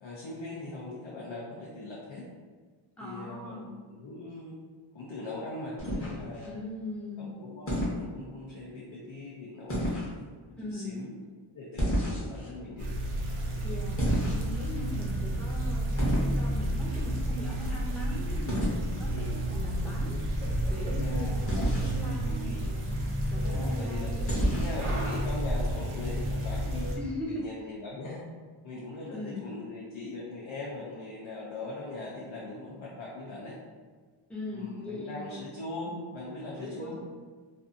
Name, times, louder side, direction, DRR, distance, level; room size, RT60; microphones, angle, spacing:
voice 1, 0.0-2.3 3.0-4.6 4.9-6.6 7.2-10.0 10.7-11.1 11.5-12.9 19.1-19.4 21.0-22.7 23.4-26.9 27.4-28.3 28.6-33.6 34.5-37.0, left 2 dB, 70° left, -5 dB, 0.6 m, -40 dB
voice 2, 3.0-3.7 6.4-7.3 10.6-11.1 13.6-20.2 20.7-24.5 27.0-27.4 29.1-29.4 34.3-35.4 36.6-37.0, left 1 dB, ahead, -5 dB, 0.6 m, -40 dB
sound 1, 5.8-6.5 7.7-8.0 9.7-10.1 11.8-12.5 14.0-14.7 16.0-16.3 18.5-18.8 21.5-22.0 24.3-24.8, equal, 25° left, 0.8 m, -29 dB
sound 2, 12.8-27.0, right 1 dB, 80° right, 0.7 m, -31 dB
2.5 x 2.4 x 2.5 m, 1.5 s
wide cardioid pair, 95°, 50 cm